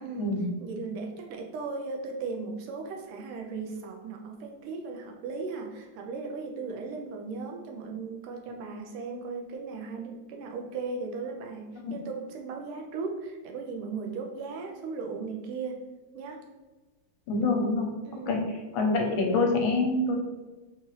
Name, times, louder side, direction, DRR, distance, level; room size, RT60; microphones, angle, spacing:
voice 1, 0.0-15.9 16.1-16.4 18.0-18.5, right 4 dB, 90° right, 2 dB, 1.5 m, -37 dB
voice 2, 17.3-17.9 18.3-18.4 18.7-20.2, left 3 dB, 75° left, 2 dB, 1.4 m, -25 dB
4.1 x 2.4 x 3.0 m, 1.2 s
omnidirectional pair, 2.3 m